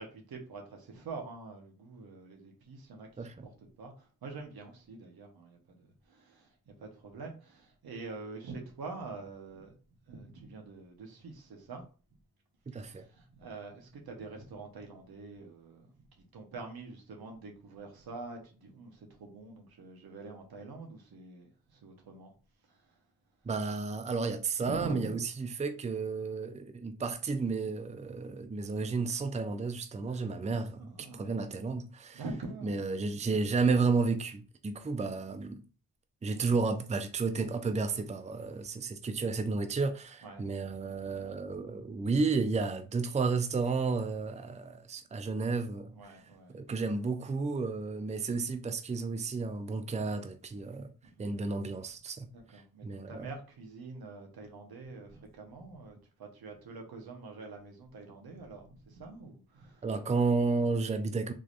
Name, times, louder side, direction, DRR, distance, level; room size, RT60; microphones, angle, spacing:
voice 1, 0.0-9.7 10.1-11.9 12.7-22.3 22.6-23.0 24.6-25.2 30.1-31.5 32.1-33.5 36.4-36.6 40.2-40.5 42.0-42.1 45.9-46.6 51.0-51.3 52.3-59.9, right 3 dB, 85° right, 1.1 m, -45 dB
voice 2, 12.7-13.0 23.4-25.2 25.6-32.2 32.6-35.6 36.2-45.9 46.5-50.9 51.2-52.3 52.8-53.3 59.8-61.3, right 4 dB, 20° right, 0.5 m, -32 dB
3.7 x 3.2 x 2.5 m
cardioid pair, 50°, 36 cm